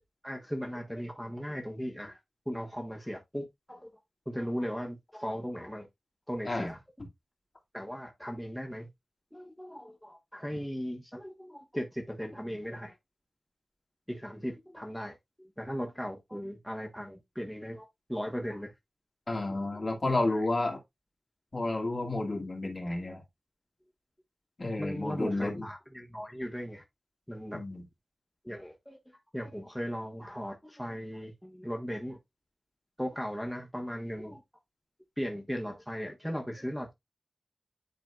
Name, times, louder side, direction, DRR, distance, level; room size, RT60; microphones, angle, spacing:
voice 1, 0.2-2.2 2.5-3.9 4.3-5.9 6.3-6.8 7.7-8.9 9.3-12.9 14.1-15.1 15.4-18.7 20.0-20.1 24.8-26.8 27.3-27.6 28.4-29.0 29.3-32.2 33.0-34.4 35.2-36.9, equal, 5° left, 1.3 m, -37 dB
voice 2, 19.3-20.8 21.5-23.2 24.6-25.7 27.5-27.8, left 2 dB, 45° left, 2.3 m, -31 dB
10.5 x 4.1 x 2.4 m
wide cardioid pair, 75°, 0 cm